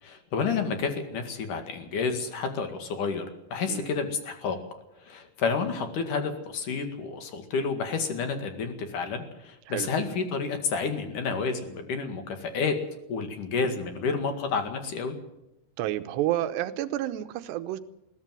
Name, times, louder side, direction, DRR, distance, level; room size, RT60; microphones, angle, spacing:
voice 1, 0.0-3.2 3.5-4.6 5.0-12.8 13.1-15.2, left 5 dB, 55° left, 7 dB, 3.2 m, -30 dB
voice 2, 15.8-17.8, right 13 dB, 80° right, 11 dB, 3.0 m, -30 dB
21.5 x 17.0 x 7.6 m, 0.87 s
omnidirectional pair, 4.9 m